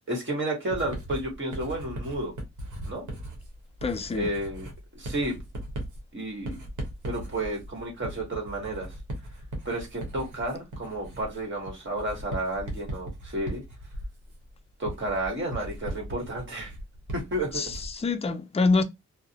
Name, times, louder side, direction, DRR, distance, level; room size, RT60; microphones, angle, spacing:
voice 1, 0.1-2.3 2.9-3.1 4.1-5.4 6.1-6.6 7.0-8.9 9.6-13.6 14.8-16.7 17.1-17.7, right 1 dB, 40° right, 1.2 m, -31 dB
Writing, 0.7-18.0, right 1 dB, 85° right, 0.9 m, -38 dB
voice 2, 3.8-4.3 17.5-18.8, left 3 dB, 20° left, 0.4 m, -26 dB
2.4 x 2.0 x 2.6 m
cardioid pair, 55°, 29 cm